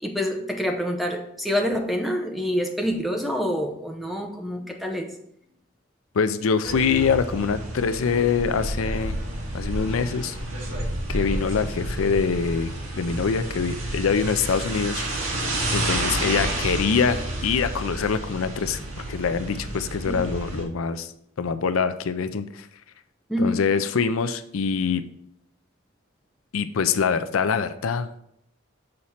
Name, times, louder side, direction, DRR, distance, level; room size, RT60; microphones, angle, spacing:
voice 1, 0.0-5.1 20.1-20.2 23.3-23.6, equal, ahead, 2 dB, 0.7 m, -27 dB
voice 2, 6.1-9.2 9.5-10.4 11.1-15.0 15.3-15.4 15.7-17.2 17.4-18.8 19.1-21.1 21.4-22.7 23.4-25.0 26.5-28.1, left 5 dB, 85° left, 12 dB, 0.5 m, -24 dB
sound 1, 6.6-20.6, right 1 dB, 80° right, 1.8 m, -30 dB
6.5 x 4.2 x 5.6 m, 0.74 s
head